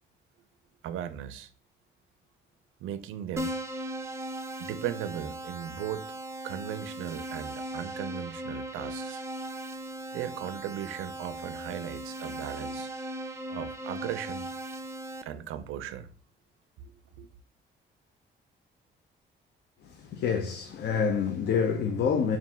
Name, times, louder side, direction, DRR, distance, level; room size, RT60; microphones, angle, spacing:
voice 1, 0.8-1.5 2.8-3.6 4.6-6.1 6.4-9.2 10.1-12.9 13.5-14.5 15.2-16.1 17.2-17.3, right 10 dB, 90° right, 0.4 m, -37 dB
Keyboard (musical), 3.4-15.2, right 1 dB, 15° right, 0.4 m, -38 dB
voice 2, 19.8-22.4, left 6 dB, 60° left, 0.5 m, -27 dB
4.0 x 2.5 x 3.5 m
cardioid pair, 90°, 20 cm